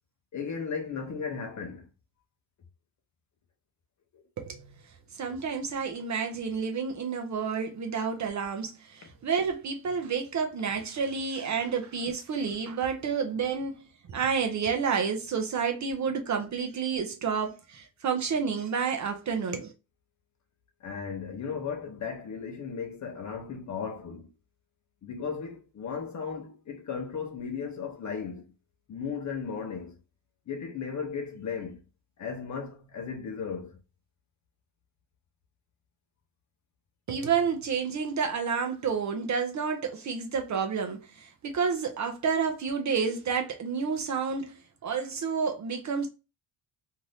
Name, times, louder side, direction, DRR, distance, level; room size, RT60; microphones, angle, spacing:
voice 1, 0.3-1.9 4.1-4.2 20.8-24.3 25.0-28.5 28.9-30.0 30.5-31.8 32.2-33.8, left 6 dB, 40° left, 0.6 m, -36 dB
voice 2, 5.1-13.8 14.1-19.7 37.1-46.1, right 6 dB, 40° right, 0.5 m, -30 dB
2.6 x 2.5 x 3.2 m
cardioid pair, 150°, 46 cm